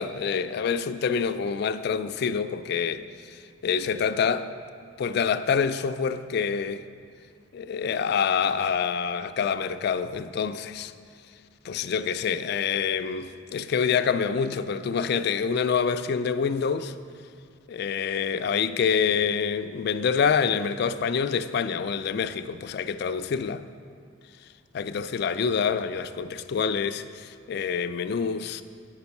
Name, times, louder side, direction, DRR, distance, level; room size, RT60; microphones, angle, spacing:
voice 1, 0.0-4.5 5.0-6.8 7.5-10.9 11.6-16.9 17.7-23.6 24.7-28.6, left 6 dB, 55° left, 0.3 m, -26 dB
8.8 x 5.3 x 7.0 m
head